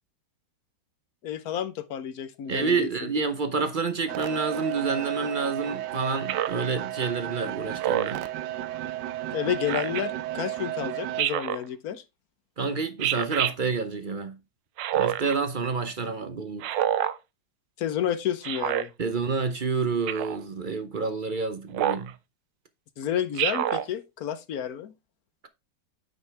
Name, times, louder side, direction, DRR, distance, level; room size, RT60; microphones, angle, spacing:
voice 1, 1.2-3.1 9.3-12.0 17.8-18.9 23.0-24.9, left 9 dB, 60° left, 1.2 m, -30 dB
voice 2, 2.5-8.2 12.6-14.4 14.9-16.7 19.0-22.1, right 4 dB, 45° right, 0.6 m, -28 dB
sound 1, 4.1-11.2, right 13 dB, 75° right, 1.2 m, -33 dB
Speech synthesizer, 6.3-6.7 7.8-8.3 9.7-10.0 11.2-11.6 13.0-13.5 14.8-15.4 16.6-17.2 18.4-18.9 20.1-20.4 21.7-22.1 23.4-23.9, right 11 dB, 90° right, 1.3 m, -27 dB
9.4 x 5.3 x 3.3 m
omnidirectional pair, 1.9 m